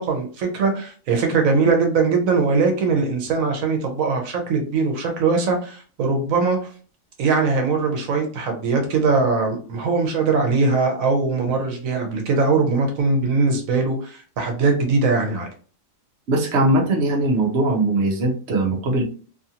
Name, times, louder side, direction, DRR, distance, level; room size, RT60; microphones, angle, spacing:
voice 1, 0.0-6.6 7.2-15.5, right 4 dB, 85° right, 3 dB, 1.1 m, -21 dB
voice 2, 16.3-19.0, right 2 dB, 60° right, 0 dB, 1.0 m, -20 dB
2.7 x 2.5 x 2.7 m, 0.41 s
omnidirectional pair, 1.4 m